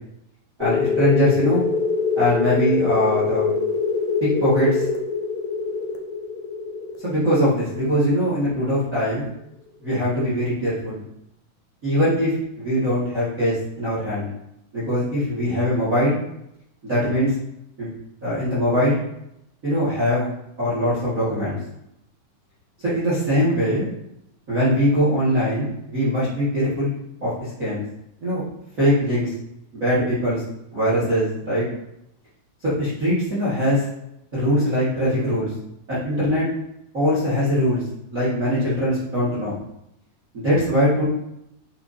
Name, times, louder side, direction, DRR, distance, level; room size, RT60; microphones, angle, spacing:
sound 1, 0.6-8.9, left 5 dB, 70° left, 1.8 m, -24 dB
voice 1, 0.6-1.6 2.2-3.5 4.2-4.9 7.0-9.3 9.8-11.1 11.8-14.3 14.7-16.2 16.8-17.3 17.8-17.9 18.2-19.0 19.6-20.3 20.6-21.6 22.8-23.9 24.5-26.9 27.2-27.8 28.2-28.4 28.8-29.3 29.7-30.4 30.7-31.7 32.6-33.9 34.3-35.5 35.9-36.5 36.9-37.8 38.1-39.6 40.3-41.0, equal, 30° right, -10 dB, 1.9 m, -21 dB
8.5 x 4.9 x 2.8 m, 0.81 s
omnidirectional pair, 4.0 m